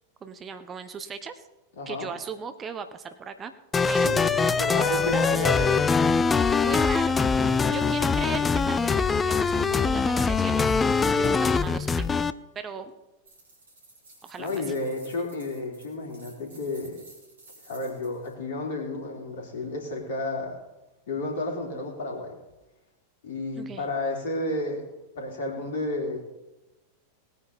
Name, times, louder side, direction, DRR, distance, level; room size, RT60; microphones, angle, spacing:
voice 1, 0.2-1.4 1.9-3.5 3.9-5.9 6.3-7.2 7.7-10.8 11.0-12.1 12.5-12.9 14.2-14.5 23.6-23.9, right 6 dB, 25° right, 9 dB, 0.9 m, -37 dB
voice 2, 1.8-2.1 3.9-6.0 7.6-8.0 10.9-11.4 14.4-17.0 17.6-20.6 21.1-22.3 23.2-24.9 25.2-26.2, left 2 dB, 60° left, 0 dB, 4.0 m, -32 dB
sound 1, 3.7-12.3, left 5 dB, 15° left, 0.5 m, -23 dB
sound 2, 13.3-18.3, right 2 dB, 65° right, 4.4 m, -53 dB
19.5 x 9.3 x 4.2 m, 0.99 s
figure-of-eight pair, 90°, 0 cm